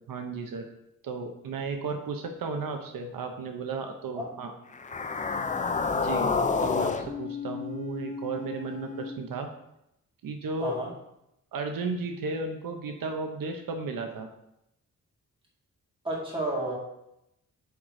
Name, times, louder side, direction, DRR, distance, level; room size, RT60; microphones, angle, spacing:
voice 1, 0.1-0.6 1.0-4.5 5.9-6.3 6.6-9.5 10.2-10.7 11.5-14.3, right 4 dB, 85° right, 4 dB, 0.9 m, -34 dB
sound 1, 4.7-9.1, left 4 dB, 25° left, 0.4 m, -30 dB
voice 2, 16.0-16.7, right 1 dB, 15° right, -4 dB, 2.2 m, -31 dB
8.3 x 3.8 x 4.8 m, 0.82 s
wide cardioid pair, 160°, 33 cm